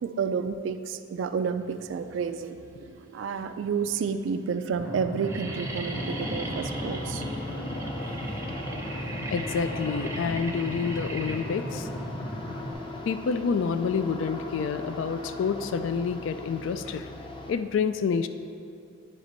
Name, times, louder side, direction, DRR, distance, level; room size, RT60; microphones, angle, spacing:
voice 1, 0.0-7.2, right 6 dB, 75° right, 9 dB, 0.3 m, -30 dB
sound 1, 2.6-3.2 3.9-4.0 4.2-4.6 4.9-13.8, right 2 dB, 15° right, 0.6 m, -40 dB
sound 2, 4.7-12.7, equal, 60° left, 1.4 m, -36 dB
sound 3, 5.9-17.5, left 2 dB, 25° left, 0.5 m, -39 dB
voice 2, 9.3-11.9 13.1-17.1 17.5-18.3, left 6 dB, 75° left, 10 dB, 0.3 m, -28 dB
9.8 x 5.1 x 3.9 m, 2.5 s
head